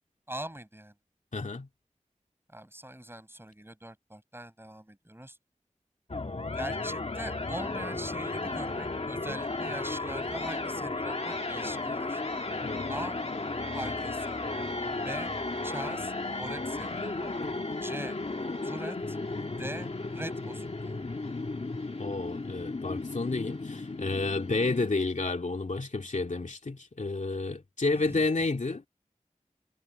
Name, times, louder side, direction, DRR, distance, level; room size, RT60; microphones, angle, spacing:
voice 1, 0.3-0.9 2.5-5.4 6.5-12.2 12.9-13.2 13.7-14.4 15.0-15.3 15.6-17.3 17.8-18.2 18.6-19.2 19.6-21.0 27.9-28.5, right 1 dB, 20° right, 6.3 m, -42 dB
voice 2, 1.3-1.7 12.6-12.9 22.0-28.8, left 3 dB, 75° left, 2.4 m, -30 dB
sound 1, 6.1-24.9, left 3 dB, 55° left, 1.6 m, -34 dB
wide cardioid pair, 60°, 13 cm